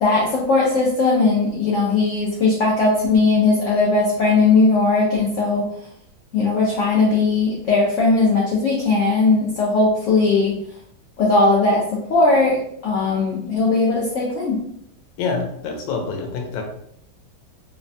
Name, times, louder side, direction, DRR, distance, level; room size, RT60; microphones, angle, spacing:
voice 1, 0.0-5.7 6.3-10.6 11.2-11.8 12.1-14.6, left 3 dB, 75° left, -4 dB, 0.7 m, -18 dB
voice 2, 15.2-16.6, left 4 dB, 90° left, 3 dB, 1.3 m, -26 dB
3.3 x 2.1 x 2.5 m, 0.69 s
omnidirectional pair, 1.9 m